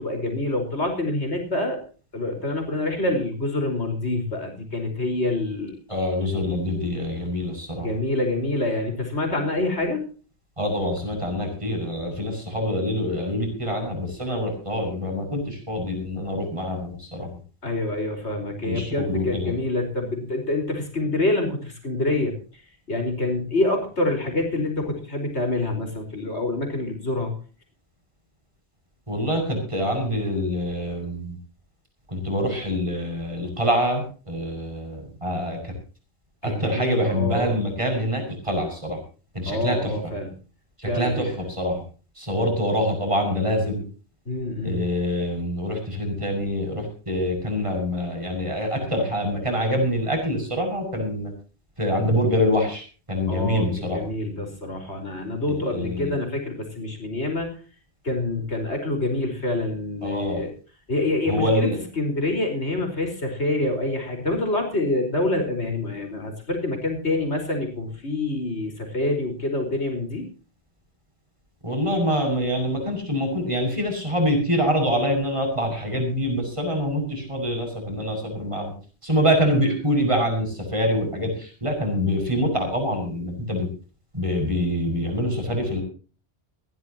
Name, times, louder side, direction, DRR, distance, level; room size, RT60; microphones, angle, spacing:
voice 1, 0.0-1.8 2.1-5.7 7.8-10.0 17.6-22.3 22.9-27.3 36.4-37.6 39.5-40.3 40.8-41.3 44.3-44.8 53.3-57.5 58.0-60.5 60.9-61.7 62.0-70.2, left 2 dB, 75° left, 4 dB, 5.1 m, -26 dB
voice 2, 5.9-7.9 10.6-17.3 18.6-19.5 29.1-31.4 32.1-35.7 36.4-39.0 39.3-39.9 40.8-41.3 41.6-41.8 42.2-43.8 44.6-51.3 51.8-54.0 55.5-56.2 60.0-60.4 61.3-61.8 71.6-78.7 79.0-83.7 84.1-85.8, equal, 25° right, 4 dB, 7.6 m, -25 dB
22.0 x 16.0 x 2.9 m, 0.38 s
omnidirectional pair, 1.1 m